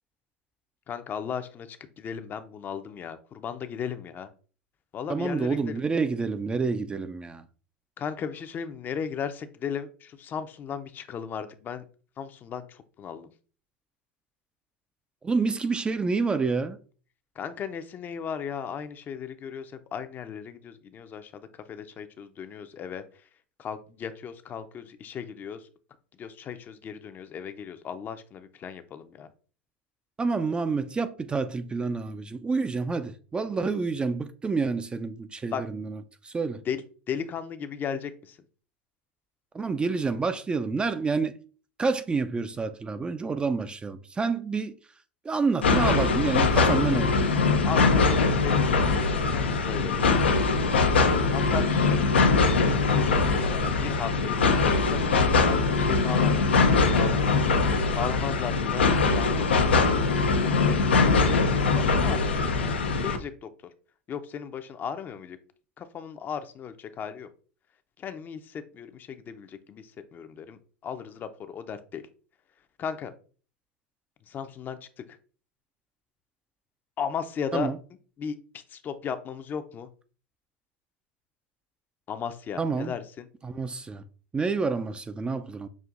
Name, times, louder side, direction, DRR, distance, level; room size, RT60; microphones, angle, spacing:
voice 1, 0.9-4.3 4.9-5.8 8.0-11.8 12.2-13.3 17.4-21.4 21.7-23.0 23.6-25.6 26.2-29.3 35.5-35.6 36.7-38.4 47.6-48.8 49.3-50.1 51.3-57.4 57.9-59.8 60.3-63.5 64.1-65.4 65.8-67.3 68.0-69.8 70.1-72.0 72.8-73.1 74.3-74.8 77.0-77.7 78.2-78.4 78.7-79.9 82.1-83.3, left 7 dB, 35° left, 0.5 m, -36 dB
voice 2, 5.1-7.4 15.2-16.8 30.2-36.6 39.5-41.3 41.8-44.7 45.2-47.2 77.5-77.8 82.6-82.9 83.4-84.0 84.3-85.7, right 4 dB, 15° right, 0.4 m, -28 dB
sound 1, 45.6-63.2, left 4 dB, 90° left, 0.5 m, -22 dB
6.2 x 2.5 x 2.4 m
hypercardioid pair, 95°, 6 cm